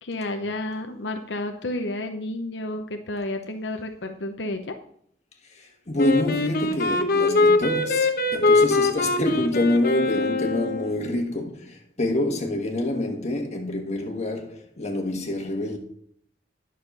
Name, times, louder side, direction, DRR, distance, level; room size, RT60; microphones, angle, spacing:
voice 1, 0.0-4.7, left 1 dB, 85° left, 0.8 m, -31 dB
voice 2, 5.4-15.8, left 1 dB, 40° left, 1.6 m, -27 dB
Wind instrument woodwind instrument, 6.0-11.1, left 3 dB, 55° left, 1.0 m, -22 dB
10.0 x 6.6 x 5.3 m
head